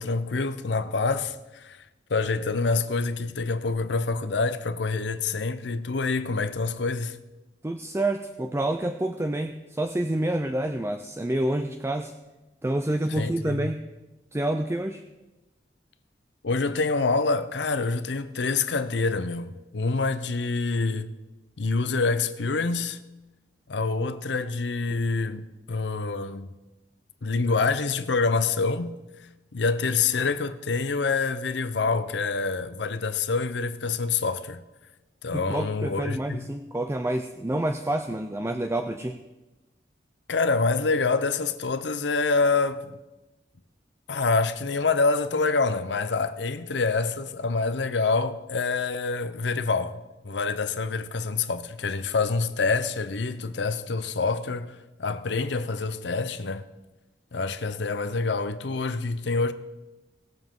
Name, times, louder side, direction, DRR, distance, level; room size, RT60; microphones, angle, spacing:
voice 1, 0.0-1.8 2.1-7.2 13.1-13.7 16.4-21.1 21.6-23.0 23.7-26.5 27.2-29.0 29.5-34.6 35.2-36.5 40.3-42.9 44.1-56.6 57.3-59.5, left 4 dB, 85° left, 0.7 m, -26 dB
voice 2, 7.6-12.1 12.6-13.8 14.3-15.0 35.3-39.2, right 1 dB, 15° right, 0.4 m, -28 dB
19.5 x 7.3 x 3.8 m
head